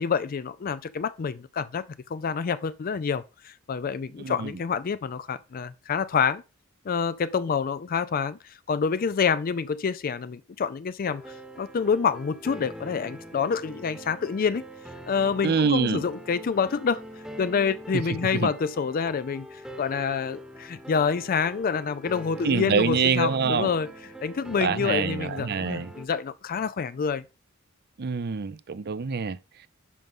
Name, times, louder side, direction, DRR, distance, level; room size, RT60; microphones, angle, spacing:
voice 1, 0.0-1.9 2.1-6.4 6.9-8.4 8.7-11.2 11.6-14.6 15.1-17.0 17.4-23.9 24.2-27.2, left 6 dB, 45° left, 0.4 m, -27 dB
voice 2, 4.2-4.5 15.4-16.1 17.9-18.5 22.4-23.7 24.6-25.9 28.0-29.7, right 5 dB, 50° right, 0.5 m, -26 dB
sound 1, 11.0-26.1, right 1 dB, 5° right, 1.1 m, -43 dB
11.0 x 5.4 x 3.7 m
head